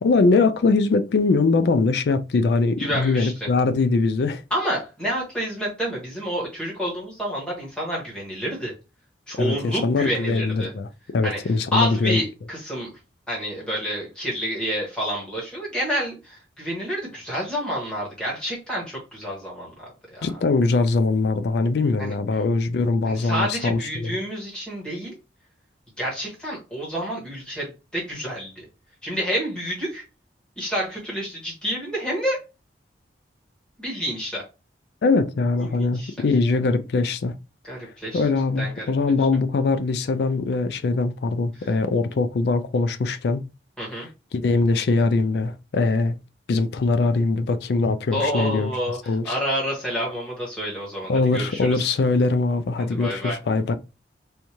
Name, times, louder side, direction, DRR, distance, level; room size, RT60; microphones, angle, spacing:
voice 1, 0.0-4.4 9.4-12.2 20.2-24.2 35.0-37.4 38.1-43.5 43.9-44.1 44.3-46.1 46.5-48.7 49.1-49.4 51.1-53.8, left 3 dB, 65° left, 0.3 m, -22 dB
voice 2, 2.8-3.3 4.5-8.7 9.3-10.7 11.2-11.4 11.7-12.9 13.3-20.3 22.0-22.1 23.0-25.1 26.0-28.7 29.0-30.0 30.6-32.4 33.8-34.4 35.6-36.1 37.6-38.2 38.6-38.8 41.6-41.7 43.8-44.1 48.1-51.9 53.0-53.4, equal, 5° left, 1.5 m, -29 dB
3.5 x 2.7 x 2.9 m
head